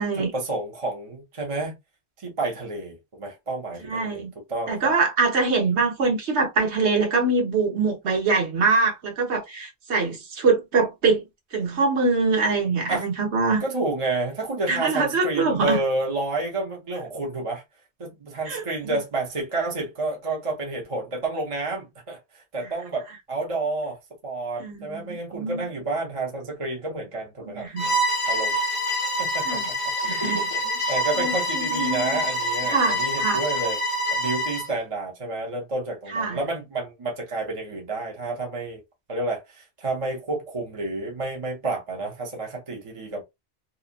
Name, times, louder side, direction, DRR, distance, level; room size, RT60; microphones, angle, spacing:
voice 1, 0.2-1.8 2.2-4.9 12.9-13.0 13.6-17.6 18.0-24.0 24.2-27.7 28.3-28.6 29.2-29.9 30.2-33.8 34.1-38.8 39.1-43.2, right 2 dB, 35° right, 0.7 m, -30 dB
voice 2, 3.8-4.3 4.7-11.2 11.5-13.6 14.7-15.8 18.5-19.0 24.6-25.7 27.5-27.9 29.4-29.7 30.0-30.4 31.1-32.2 32.7-33.4 36.1-36.4, right 4 dB, 85° right, 1.2 m, -24 dB
Bowed string instrument, 27.8-34.7, equal, 55° left, 1.0 m, -26 dB
2.8 x 2.3 x 2.4 m
omnidirectional pair, 1.1 m